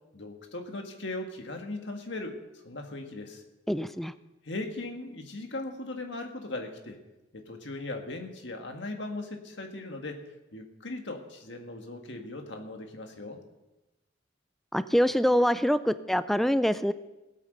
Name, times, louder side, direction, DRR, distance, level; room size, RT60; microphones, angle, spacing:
voice 1, 0.1-2.4 2.6-3.4 4.4-7.0 7.3-10.2 10.5-13.4, left 2 dB, 65° left, 4 dB, 1.7 m, -38 dB
voice 2, 3.7-4.1 14.7-16.9, equal, ahead, 13 dB, 0.4 m, -25 dB
16.0 x 8.9 x 6.6 m, 1.0 s
head